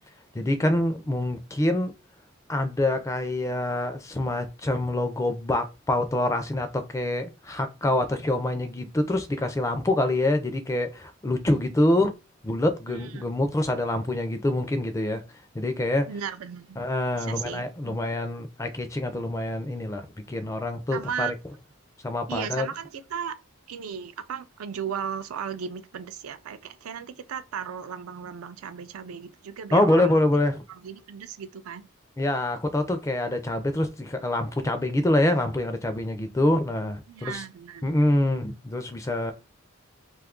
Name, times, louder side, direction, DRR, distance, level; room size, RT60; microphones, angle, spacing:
voice 1, 0.3-1.9 2.5-12.1 12.4-15.2 15.5-16.1 16.8-21.3 22.0-22.7 29.7-30.6 32.2-37.4 37.8-39.3, left 1 dB, 15° left, 0.4 m, -25 dB
voice 2, 12.9-13.3 16.1-16.8 17.1-18.0 20.9-21.4 22.3-23.4 23.7-30.2 30.7-31.9 37.1-38.0, right 7 dB, 85° right, 0.4 m, -36 dB
2.6 x 2.4 x 3.6 m
head